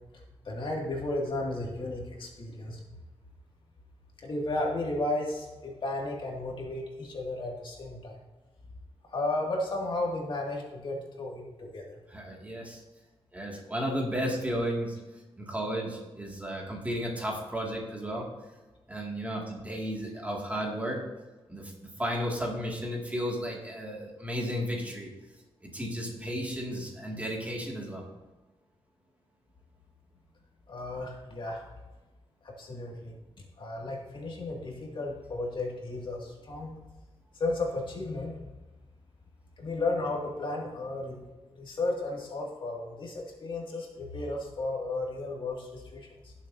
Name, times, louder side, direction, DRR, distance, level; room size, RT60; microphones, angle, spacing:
voice 1, 0.4-2.8 4.2-8.2 9.1-12.0 30.7-31.6 32.4-33.1 33.6-36.8 37.3-38.3 39.6-41.2 41.5-46.3, left 2 dB, 55° left, -1 dB, 2.2 m, -34 dB
voice 2, 12.1-12.8 13.3-15.0 15.4-18.3 18.9-21.0 21.5-21.7 22.0-25.1 25.7-28.0, equal, 15° right, -2 dB, 2.2 m, -33 dB
18.0 x 7.2 x 2.7 m, 1.2 s
wide cardioid pair, 140°, 10 cm